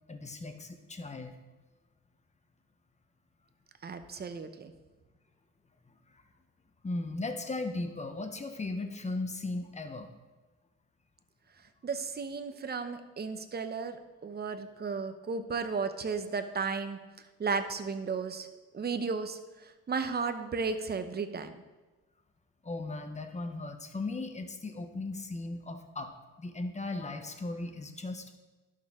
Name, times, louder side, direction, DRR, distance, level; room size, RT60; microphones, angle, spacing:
voice 1, 0.1-1.4 6.8-10.1 22.6-26.1 26.4-28.4, left 2 dB, 25° left, 6 dB, 1.1 m, -37 dB
voice 2, 3.8-4.7 11.8-17.0 17.4-18.5 18.7-21.6, right 5 dB, 35° right, 8 dB, 0.8 m, -34 dB
11.5 x 6.5 x 3.7 m, 1.2 s
cardioid pair, 90°, 30 cm